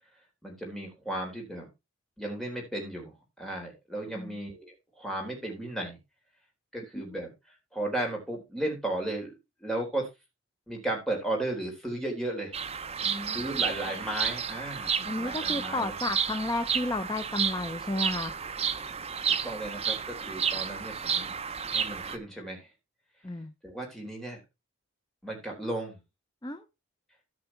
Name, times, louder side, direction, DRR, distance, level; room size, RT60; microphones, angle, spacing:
voice 1, 0.4-1.7 2.2-6.0 6.7-9.3 9.6-10.1 10.7-12.6 13.3-16.0 19.3-21.3 21.6-22.7 23.6-24.4 25.2-26.0, right 1 dB, ahead, -1 dB, 3.8 m, -35 dB
Bird vocalization bird call bird song, 12.5-22.2, right 7 dB, 30° right, 0.7 m, -31 dB
voice 2, 13.0-13.4 15.1-18.4 23.2-23.5 26.4-26.6, left 2 dB, 20° left, 8 dB, 0.7 m, -32 dB
14.0 x 5.0 x 4.5 m, 0.25 s
head